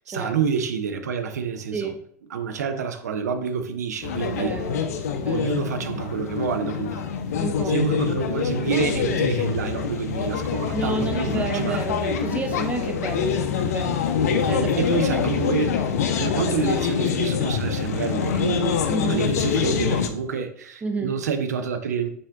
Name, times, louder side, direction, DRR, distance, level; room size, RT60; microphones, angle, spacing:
voice 1, 0.1-1.9 2.3-4.5 5.3-7.0 7.6-11.8 14.8-15.8 16.2-22.1, right 6 dB, 65° right, 0.5 m, -28 dB
sound 1, 4.0-20.1, left 7 dB, 60° left, 0.5 m, -25 dB
voice 2, 4.2-4.8 5.1-5.8 7.4-7.8 10.7-14.8 15.1-15.2 18.9-19.2 20.8-21.1, right 3 dB, 15° right, 0.4 m, -30 dB
7.1 x 2.7 x 2.3 m
figure-of-eight pair, 85°, 9 cm